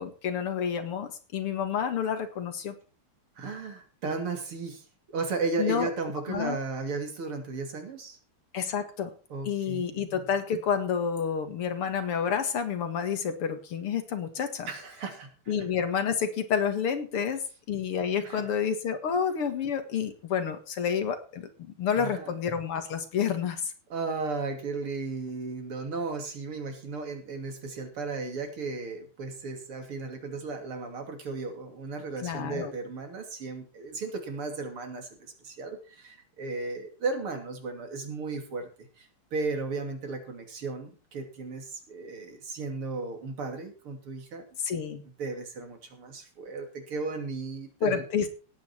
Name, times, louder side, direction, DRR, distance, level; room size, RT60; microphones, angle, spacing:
voice 1, 0.0-2.7 5.6-5.9 6.3-6.6 8.5-9.1 9.5-14.7 15.5-21.5 21.8-23.7 32.2-32.7 44.6-45.0 47.8-48.3, left 7 dB, 90° left, 8 dB, 2.7 m, -29 dB
voice 2, 3.4-8.2 9.3-10.2 14.7-15.5 18.2-18.5 21.9-22.3 23.9-38.7 39.0-44.5 45.2-48.0, right 4 dB, 80° right, 5 dB, 3.6 m, -35 dB
18.0 x 9.0 x 4.5 m, 0.35 s
omnidirectional pair, 2.4 m